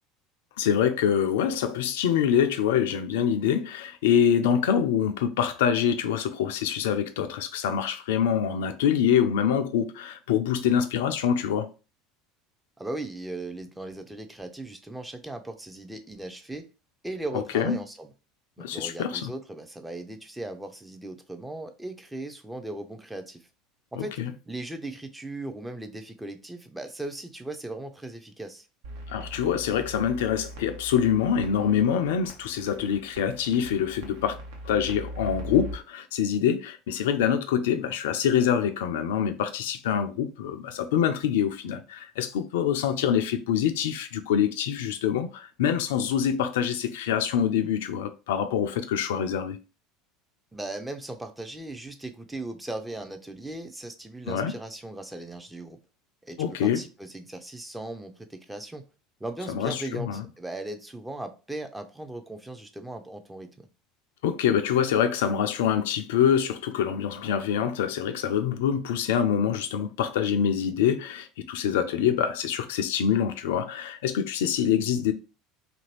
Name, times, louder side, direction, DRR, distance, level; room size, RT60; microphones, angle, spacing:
voice 1, 0.6-11.7 17.3-17.8 18.6-19.3 24.0-24.3 29.1-34.4 34.6-49.6 54.3-54.5 56.4-56.8 59.5-60.2 64.2-75.1, left 8 dB, 65° left, 0.3 m, -25 dB
voice 2, 12.8-16.7 17.0-18.1 18.6-23.5 23.9-24.2 24.5-28.7 50.5-55.8 56.2-58.8 59.2-63.7, right 2 dB, 10° right, 0.5 m, -38 dB
sound 1, 28.8-35.8, right 1 dB, 65° right, 0.7 m, -41 dB
2.7 x 2.6 x 3.0 m
figure-of-eight pair, 70°, 0 cm